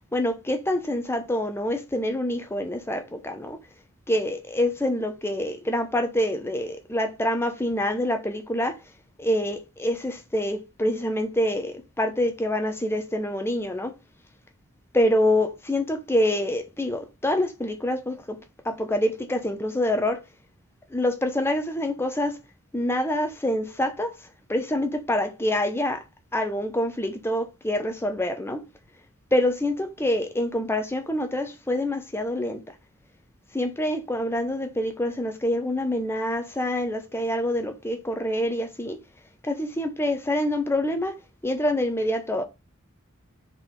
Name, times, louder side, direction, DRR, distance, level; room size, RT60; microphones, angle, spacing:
voice 1, 0.1-3.6 4.1-8.8 9.2-13.9 14.9-18.4 18.6-20.2 20.9-22.4 22.7-24.1 24.5-26.0 26.3-28.6 29.3-32.6 33.5-39.0 39.4-41.2 41.4-42.4, left 1 dB, 10° left, 0.7 m, -26 dB
4.4 x 4.0 x 5.2 m
head